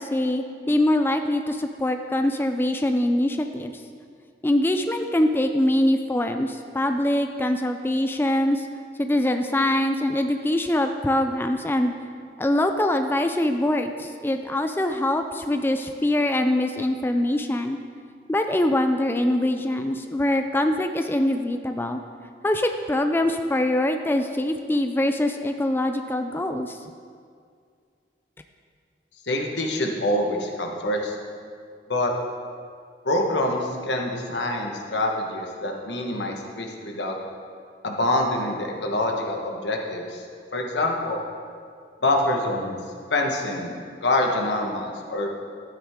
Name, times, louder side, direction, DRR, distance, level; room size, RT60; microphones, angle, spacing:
voice 1, 0.0-3.8 4.4-8.7 9.0-11.9 12.4-17.8 18.3-22.0 22.4-26.8, left 1 dB, 10° left, 6 dB, 0.3 m, -23 dB
voice 2, 29.2-31.2 31.9-32.1 33.0-37.2 37.8-40.2 40.5-41.2 42.0-42.8 43.1-45.3, left 1 dB, 80° left, 1 dB, 1.3 m, -25 dB
13.0 x 8.9 x 3.6 m, 2.2 s
head